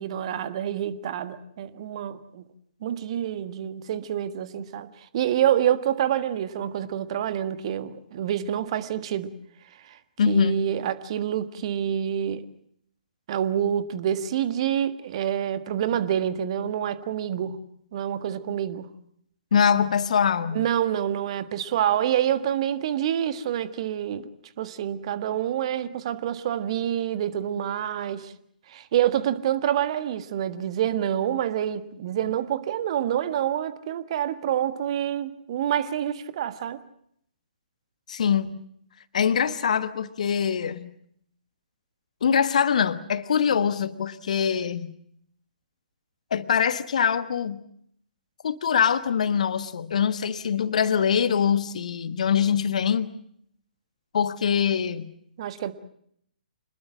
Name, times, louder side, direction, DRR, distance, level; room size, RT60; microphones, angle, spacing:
voice 1, 0.0-2.5 2.8-4.9 5.1-9.3 9.8-10.0 10.3-12.4 13.3-17.6 17.9-18.9 20.5-24.3 24.6-28.3 28.7-36.8 55.4-55.7, right 10 dB, 40° right, 1.6 m, -27 dB
voice 2, 10.2-10.6 19.5-20.6 38.1-38.6 39.1-40.9 42.2-44.9 46.3-47.6 48.4-53.1 54.1-55.1, left 7 dB, 50° left, 1.3 m, -23 dB
26.5 x 20.5 x 7.4 m
figure-of-eight pair, 125°, 5 cm